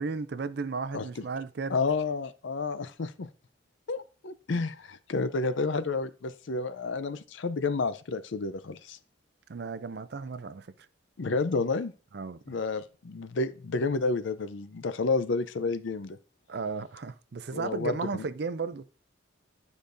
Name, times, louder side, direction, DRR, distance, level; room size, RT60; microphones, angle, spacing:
voice 1, 0.0-1.8 9.5-10.7 12.1-12.4 16.5-18.8, right 4 dB, 55° right, 0.4 m, -34 dB
voice 2, 0.9-1.2 1.7-3.3 3.9-9.0 11.2-11.9 12.5-16.2 17.5-18.2, left 3 dB, 70° left, 0.5 m, -30 dB
11.5 x 5.0 x 2.6 m
head